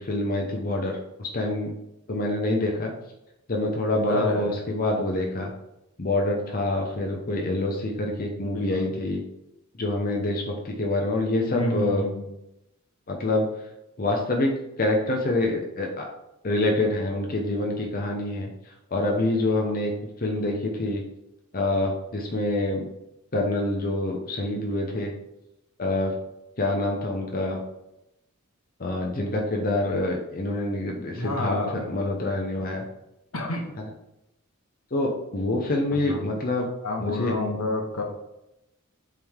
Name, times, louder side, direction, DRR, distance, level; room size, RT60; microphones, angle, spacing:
voice 1, 0.0-1.7 2.1-2.9 3.5-5.5 6.0-9.2 9.8-12.0 13.1-13.5 14.0-16.1 16.4-18.5 18.9-19.9 20.2-21.0 21.5-22.9 23.3-25.1 25.8-26.1 26.6-27.6 28.8-32.8 33.8-33.9 34.9-36.7 37.0-37.3, left 2 dB, 40° left, 1 dB, 0.8 m, -26 dB
voice 2, 4.1-4.5 8.4-8.9 11.5-12.3 31.1-31.9 33.3-33.7 35.9-36.4 36.8-38.0, left 2 dB, 80° left, 2 dB, 1.2 m, -29 dB
7.4 x 3.7 x 3.6 m, 0.88 s
head